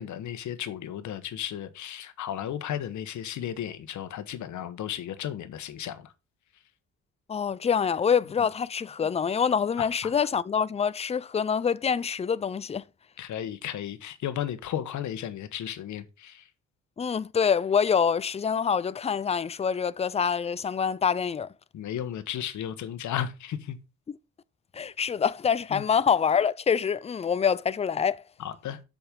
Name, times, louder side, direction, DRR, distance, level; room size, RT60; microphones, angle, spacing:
voice 1, 0.0-6.1 9.8-10.1 13.2-16.5 21.7-23.8 25.7-25.8 28.4-28.8, left 10 dB, 75° left, 1.2 m, -34 dB
voice 2, 7.3-12.8 17.0-21.5 24.7-28.2, left 7 dB, 20° left, 0.4 m, -26 dB
7.3 x 5.3 x 5.2 m
cardioid pair, 90°, 30 cm